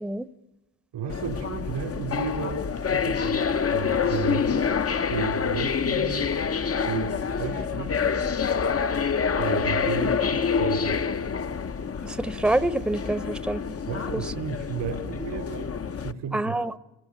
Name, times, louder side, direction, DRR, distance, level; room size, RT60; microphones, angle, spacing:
voice 1, 0.9-3.4 3.7-4.7 5.1-6.3 6.8-8.1 9.3-11.0 13.9-16.6, right 7 dB, 90° right, 4 dB, 3.9 m, -33 dB
sound 1, 1.1-16.1, left 6 dB, 35° left, 0.9 m, -27 dB
voice 2, 12.0-13.6 16.3-16.8, right 2 dB, ahead, 14 dB, 0.9 m, -26 dB
26.0 x 18.0 x 8.5 m, 1.1 s
cardioid pair, 70°, 41 cm